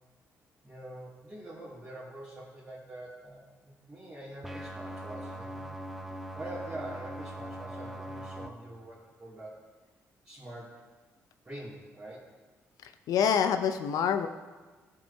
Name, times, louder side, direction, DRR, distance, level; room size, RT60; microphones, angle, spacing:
voice 1, 0.6-5.7 6.3-9.5 10.2-10.8 11.4-12.3, right 1 dB, 25° right, -9 dB, 2.6 m, -44 dB
sound 1, 4.4-8.5, right 1 dB, 5° right, 0.7 m, -41 dB
voice 2, 12.8-14.3, left 7 dB, 75° left, 8 dB, 0.5 m, -27 dB
14.0 x 4.7 x 2.8 m, 1.4 s
supercardioid pair, 65°, 6 cm